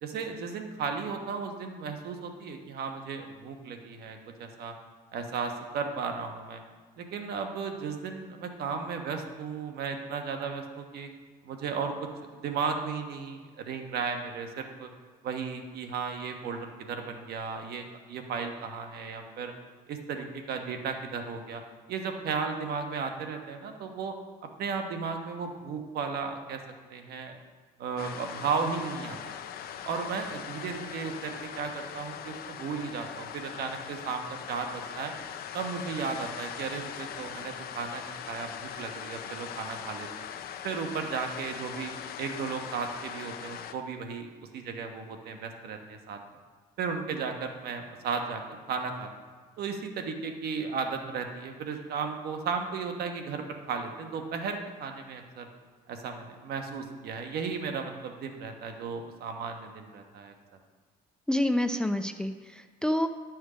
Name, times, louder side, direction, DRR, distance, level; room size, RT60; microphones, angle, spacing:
voice 1, 0.0-4.7 5.1-6.6 7.0-11.1 11.4-14.9 15.2-19.5 19.9-21.6 21.9-24.1 24.6-26.6 26.9-27.4 27.8-29.2 29.8-35.1 35.5-40.2 40.6-44.3 44.5-46.2 46.8-48.4 48.7-49.1 49.6-55.5 55.9-60.3, right 5 dB, 70° right, 5 dB, 1.2 m, -35 dB
sound 1, 28.0-43.7, left 9 dB, 65° left, 0.7 m, -41 dB
voice 2, 61.3-63.1, left 1 dB, 5° left, 8 dB, 0.5 m, -28 dB
11.5 x 6.3 x 5.0 m, 1.5 s
cardioid pair, 110°, 17 cm